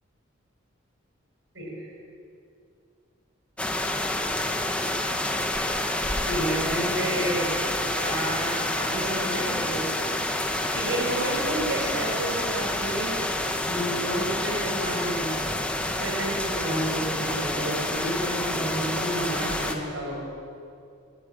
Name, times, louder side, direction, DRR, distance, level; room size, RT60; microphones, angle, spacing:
voice 1, 1.5-1.9 6.2-7.5 8.0-10.3 10.7-13.2 13.6-15.3 16.0-20.2, right 1 dB, 70° right, -1 dB, 6.3 m, -30 dB
sound 1, 3.6-19.7, left 1 dB, 5° left, 1.4 m, -28 dB
26.0 x 13.0 x 9.1 m, 2.5 s
head